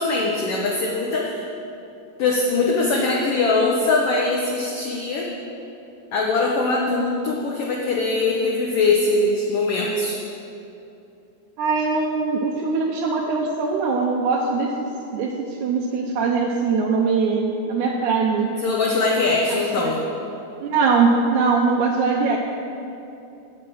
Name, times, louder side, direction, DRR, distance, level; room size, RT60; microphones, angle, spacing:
voice 1, 0.0-1.4 2.2-5.3 6.1-10.2 18.6-20.0, left 3 dB, 70° left, -1 dB, 1.5 m, -21 dB
voice 2, 11.6-14.7 15.1-15.3 15.6-18.5 19.5-19.9 20.6-22.4, right 4 dB, 85° right, -1 dB, 2.1 m, -21 dB
8.2 x 7.5 x 6.2 m, 2.8 s
omnidirectional pair, 3.5 m